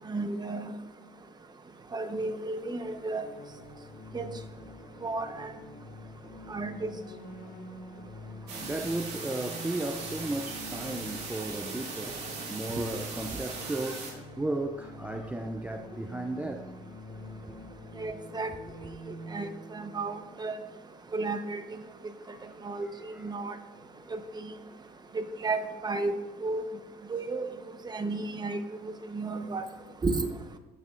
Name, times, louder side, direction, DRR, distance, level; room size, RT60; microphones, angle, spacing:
voice 1, 0.1-0.7 1.9-3.3 4.1-4.3 5.0-5.5 6.5-7.0 12.7-12.8 18.0-18.5 19.3-20.5 21.1-21.6 22.6-23.6 24.1-24.5 25.1-26.2 26.4-26.6 27.1-27.5 27.9-28.6 29.1-29.6 30.0-30.3, right 3 dB, 25° right, 0.9 m, -33 dB
sound 1, 2.6-21.2, left 1 dB, 65° left, 1.7 m, -46 dB
voice 2, 8.4-16.7 19.1-19.2 22.2-23.3, right 2 dB, 10° right, 0.4 m, -35 dB
sound 2, 8.5-14.1, right 4 dB, 80° right, 2.0 m, -39 dB
14.0 x 6.6 x 2.4 m
cardioid pair, 110°, 17 cm